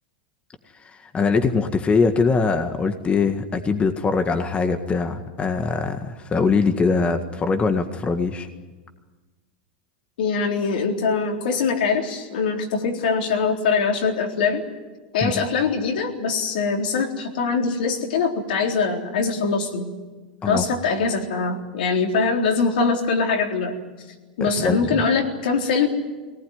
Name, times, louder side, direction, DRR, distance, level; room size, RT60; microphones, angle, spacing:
voice 1, 0.8-8.5 15.2-15.4 20.4-20.7 24.4-25.0, left 4 dB, 25° left, 6 dB, 1.8 m, -22 dB
voice 2, 10.2-14.6 15.1-19.9 20.5-23.8 24.4-25.9, left 5 dB, 75° left, 2 dB, 3.9 m, -23 dB
22.0 x 19.0 x 9.7 m, 1.3 s
hypercardioid pair, 100°, 5 cm